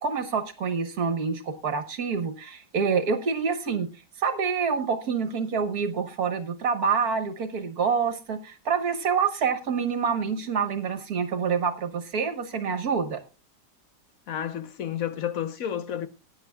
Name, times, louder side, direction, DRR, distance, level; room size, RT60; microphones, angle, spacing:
voice 1, 0.0-3.9 4.2-13.2, right 6 dB, 65° right, 1.7 m, -27 dB
voice 2, 14.3-16.1, left 10 dB, 60° left, 1.3 m, -31 dB
20.0 x 9.8 x 2.3 m
omnidirectional pair, 1.8 m